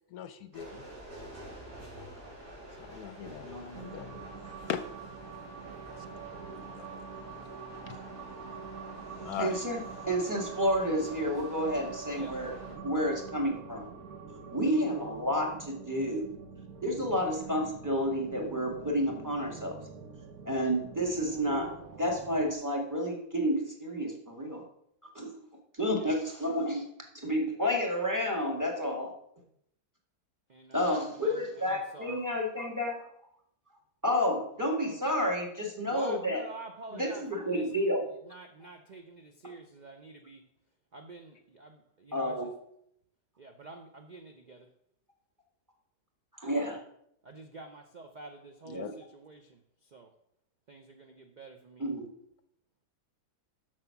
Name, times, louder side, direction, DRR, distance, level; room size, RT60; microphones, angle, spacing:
voice 1, 0.1-0.8 2.8-3.5 3.8-4.3 4.7-4.8 6.7-7.0 7.9-8.0 9.2-9.5 48.7-48.9, left 9 dB, 70° left, 11 dB, 1.0 m, -39 dB
sound 1, 0.5-12.8, right 1 dB, 90° right, 4.5 m, -48 dB
voice 2, 3.2-3.8 9.4-9.8 10.1-12.5 12.8-13.9 14.5-16.3 16.8-19.8 20.4-21.7 22.0-24.6 25.1-25.3 25.8-26.8 27.2-29.1 30.7-33.0 34.0-36.4 36.9-38.0 42.1-42.5 46.4-46.8 48.6-48.9 51.8-52.0, equal, 10° right, 1 dB, 1.8 m, -30 dB
sound 2, 3.7-22.6, right 6 dB, 65° right, 1.3 m, -45 dB
voice 3, 30.5-30.8 31.2-31.4 31.7-32.2 34.9-35.0 35.9-38.0 38.3-40.4 40.9-42.4 43.4-44.7 47.2-48.8 49.1-49.6 49.9-50.1 50.7-51.9, right 3 dB, 50° right, 5 dB, 0.5 m, -48 dB
7.6 x 6.5 x 5.8 m, 0.72 s
omnidirectional pair, 1.7 m